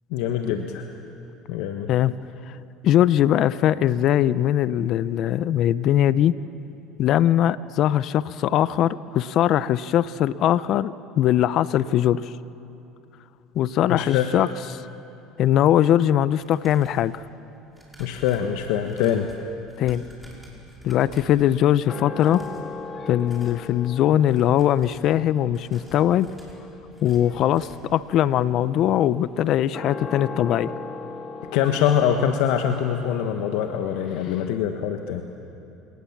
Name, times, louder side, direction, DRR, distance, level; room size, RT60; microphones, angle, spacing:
voice 1, 0.1-0.9 1.5-1.9 13.9-14.4 18.0-19.3 31.5-35.2, left 9 dB, 75° left, 5 dB, 1.2 m, -24 dB
voice 2, 2.8-6.4 7.0-12.3 13.5-14.8 15.4-17.2 19.8-20.0 20.8-22.4 23.1-26.3 27.0-30.7, left 11 dB, 55° left, 17 dB, 0.6 m, -21 dB
sound 1, 16.3-17.1 17.7-21.4 22.1-22.7 23.1-23.7 24.1-25.1 25.5-28.0 28.3-28.4 28.8-28.9, equal, 5° right, 5.2 m, -49 dB
sound 2, 20.9-34.6, left 3 dB, 35° left, 2.3 m, -39 dB
27.5 x 18.5 x 7.3 m, 2.9 s
supercardioid pair, 105°, 0 cm